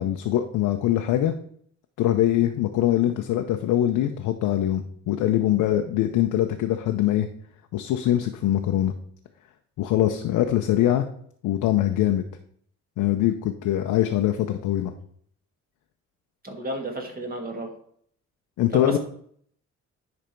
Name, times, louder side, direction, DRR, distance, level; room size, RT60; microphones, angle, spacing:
voice 1, 0.0-1.3 2.0-7.3 7.7-8.9 9.8-11.1 11.4-12.2 13.0-14.9 18.6-19.0, left 12 dB, 85° left, 5 dB, 0.6 m, -23 dB
voice 2, 16.4-17.7 18.7-19.0, right 1 dB, 30° right, 2 dB, 1.8 m, -32 dB
10.0 x 3.4 x 4.5 m, 0.62 s
cardioid pair, 90°, 30 cm